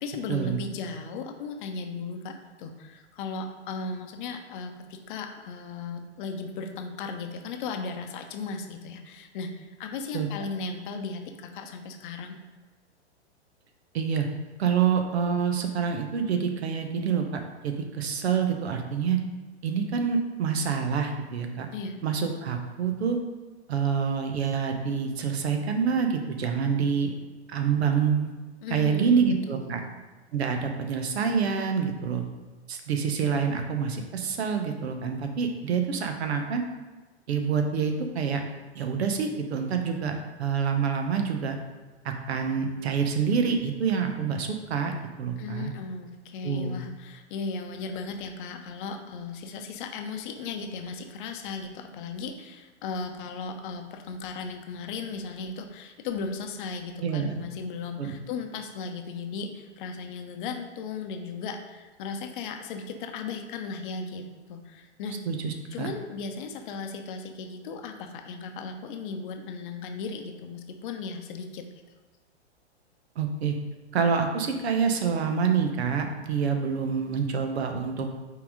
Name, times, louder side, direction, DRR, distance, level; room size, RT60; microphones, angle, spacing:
voice 1, 0.0-12.4 21.7-22.0 28.6-29.9 45.4-64.2 64.5-65.2 65.7-71.7, left 4 dB, 45° left, 5 dB, 0.8 m, -36 dB
voice 2, 13.9-14.3 14.6-19.2 19.6-21.7 22.0-23.2 23.7-27.1 27.5-28.3 28.7-29.8 30.3-32.2 32.7-36.6 37.3-38.4 38.7-41.6 42.0-45.7 46.4-46.8 57.0-57.4 58.0-58.1 65.3-65.9 73.2-73.6 73.9-78.1, right 6 dB, 65° right, 5 dB, 1.0 m, -27 dB
5.6 x 4.0 x 5.0 m, 1.2 s
hypercardioid pair, 110°, 34 cm